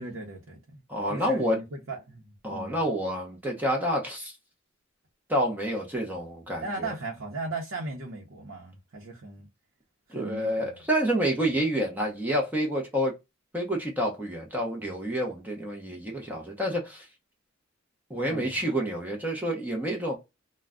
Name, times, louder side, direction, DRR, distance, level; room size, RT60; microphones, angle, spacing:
voice 1, 0.0-0.8 1.1-2.8 6.6-9.5 10.1-10.8 18.2-18.6, right 2 dB, 75° right, 0.7 m, -37 dB
voice 2, 0.9-1.6 2.4-4.3 5.3-6.6 10.1-13.1 13.5-17.1 18.1-20.2, equal, 10° right, 0.7 m, -28 dB
2.3 x 2.1 x 3.6 m
head